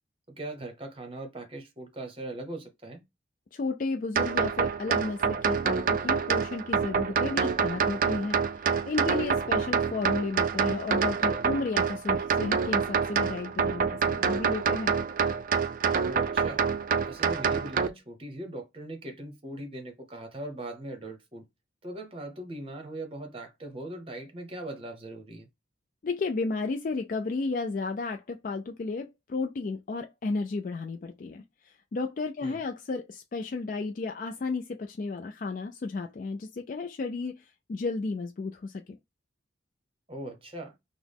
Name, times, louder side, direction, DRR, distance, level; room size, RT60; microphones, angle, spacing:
voice 1, 0.3-3.0 16.0-16.6 17.1-21.4 21.8-25.5 32.4-32.6 40.1-40.7, right 1 dB, 30° right, 0.9 m, -40 dB
voice 2, 3.5-14.9 26.0-39.0, left 3 dB, 45° left, 0.3 m, -33 dB
sound 1, 4.2-17.9, right 6 dB, 45° right, 0.3 m, -27 dB
5.8 x 2.0 x 3.5 m
head